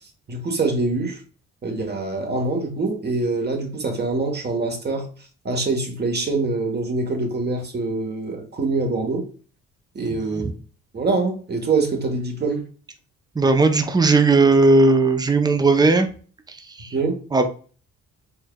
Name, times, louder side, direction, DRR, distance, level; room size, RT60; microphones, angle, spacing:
voice 1, 0.3-1.2 1.6-5.1 5.4-9.3 9.9-10.5 10.9-12.6 16.9-17.2, right 3 dB, 35° right, 1.2 m, -24 dB
voice 2, 10.1-10.5 13.4-16.1 16.5-16.9 17.3-17.5, right 3 dB, 15° right, 0.6 m, -17 dB
4.5 x 3.3 x 2.3 m
cardioid pair, 90°, 30 cm